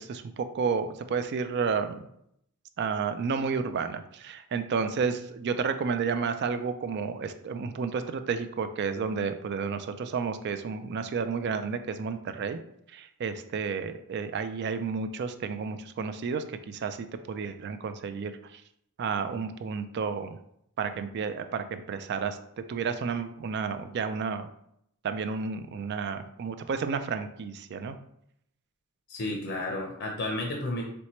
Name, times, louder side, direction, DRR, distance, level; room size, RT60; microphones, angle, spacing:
voice 1, 0.0-2.1 2.8-12.6 12.9-18.6 19.0-20.4 20.8-22.4 22.7-24.5 25.0-28.0, right 5 dB, 50° right, 10 dB, 0.3 m, -31 dB
voice 2, 29.1-30.8, left 2 dB, 55° left, 0 dB, 0.6 m, -32 dB
4.3 x 3.2 x 3.0 m, 0.73 s
head